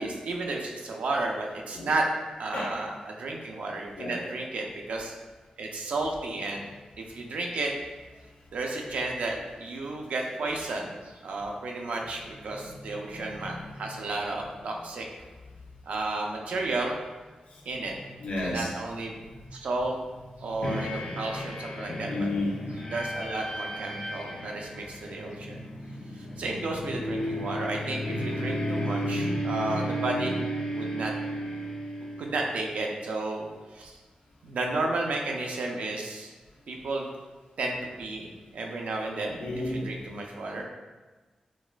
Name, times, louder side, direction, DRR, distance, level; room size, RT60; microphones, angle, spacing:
voice 1, 0.0-2.1 2.4-5.1 5.6-6.6 7.0-7.7 8.5-15.1 15.9-16.9 17.7-17.9 18.4-19.2 19.5-20.0 20.4-22.3 22.8-25.6 26.4-30.3 30.7-31.1 32.2-34.0 34.4-36.3 36.7-37.1 37.6-40.6, right 2 dB, 75° right, 1 dB, 0.4 m, -32 dB
voice 2, 13.1-13.5 18.2-18.7 20.4-20.5 22.1-22.6 39.4-39.8, left 2 dB, 80° left, -4 dB, 0.8 m, -32 dB
sound 1, 20.6-32.7, equal, 40° left, 0.3 m, -33 dB
4.1 x 2.4 x 2.2 m, 1.3 s
wide cardioid pair, 170°, 2 cm